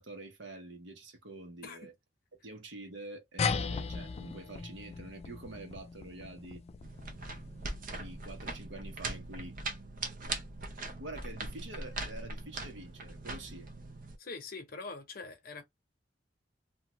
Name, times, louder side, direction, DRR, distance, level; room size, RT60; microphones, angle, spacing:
voice 1, 0.0-1.9 2.4-6.6 7.9-9.6 11.0-13.7, right 2 dB, 80° right, 0.9 m, -46 dB
sound 1, 3.4-8.3, left 5 dB, 35° left, 0.3 m, -37 dB
sound 2, 6.8-14.2, right 2 dB, 50° right, 0.6 m, -41 dB
voice 2, 14.2-15.6, left 4 dB, 50° left, 0.8 m, -43 dB
2.8 x 2.3 x 2.9 m
head